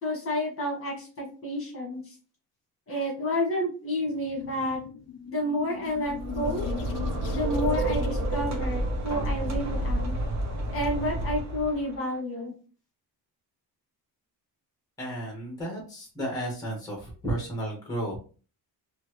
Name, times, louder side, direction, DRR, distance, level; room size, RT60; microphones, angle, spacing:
voice 1, 0.0-2.2 2.9-4.8 5.3-6.6 7.3-10.2 10.7-12.5, left 1 dB, 35° left, -2 dB, 1.8 m, -30 dB
sound 1, 4.0-9.5, left 9 dB, 55° left, 0.5 m, -42 dB
sound 2, 5.9-12.0, right 1 dB, 45° right, 1.0 m, -29 dB
voice 2, 15.0-18.2, right 1 dB, 10° left, -1 dB, 1.6 m, -33 dB
4.3 x 2.9 x 3.1 m, 0.38 s
cardioid pair, 155°, 40 cm